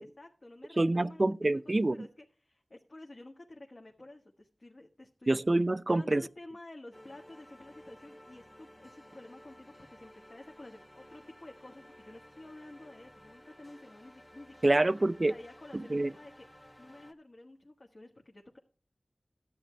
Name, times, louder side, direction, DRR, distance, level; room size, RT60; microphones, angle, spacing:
voice 1, 0.0-1.3 1.5-1.6 1.9-5.3 5.9-14.8 15.3-16.5 16.8-18.6, left 2 dB, 60° left, 1.5 m, -51 dB
voice 2, 0.8-2.1 5.3-6.2 14.6-15.3 15.7-16.1, right 2 dB, 45° right, 0.4 m, -27 dB
sound 1, 6.9-17.1, equal, 20° left, 1.2 m, -55 dB
12.5 x 8.9 x 3.3 m
cardioid pair, 40°, 0 cm